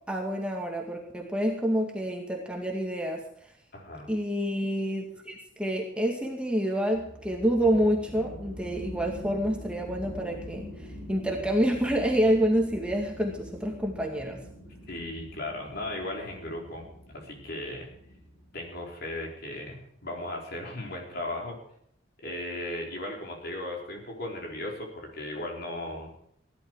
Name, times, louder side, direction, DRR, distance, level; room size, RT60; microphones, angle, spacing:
voice 1, 0.1-3.2 4.1-10.7 11.1-14.4, equal, 5° right, 0 dB, 2.2 m, -28 dB
voice 2, 3.7-4.1 14.9-17.9 18.5-21.6 22.2-26.1, left 1 dB, 55° left, 0 dB, 4.3 m, -36 dB
sound 1, 6.9-19.0, equal, 15° left, 5.9 m, -44 dB
17.0 x 11.5 x 4.8 m, 0.68 s
head